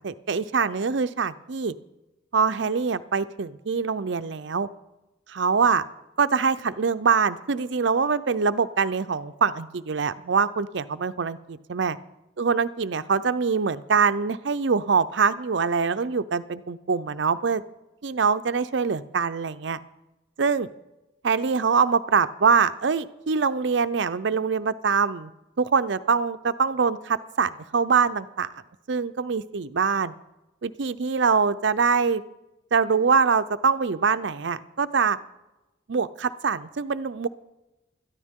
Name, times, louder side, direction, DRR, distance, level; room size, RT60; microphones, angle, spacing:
voice 1, 0.0-1.7 2.3-4.7 5.3-5.8 6.2-12.0 12.4-17.6 18.0-19.8 20.4-20.7 21.2-25.3 25.6-28.5 28.9-30.1 30.6-32.2 32.7-35.2 35.9-37.3, right 5 dB, 65° right, 12 dB, 0.5 m, -24 dB
21.0 x 13.5 x 3.7 m, 1.0 s
head